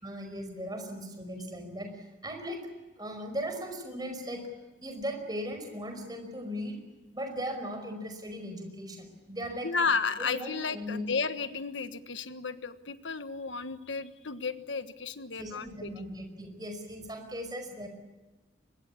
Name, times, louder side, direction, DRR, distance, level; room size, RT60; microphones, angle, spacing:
voice 1, 0.0-2.7 3.0-4.5 4.8-6.8 7.1-9.7 10.2-11.0 15.4-17.9, equal, 20° right, 5 dB, 5.1 m, -38 dB
voice 2, 9.6-16.1, left 5 dB, 85° left, 11 dB, 1.3 m, -33 dB
24.5 x 22.0 x 8.5 m, 1.2 s
head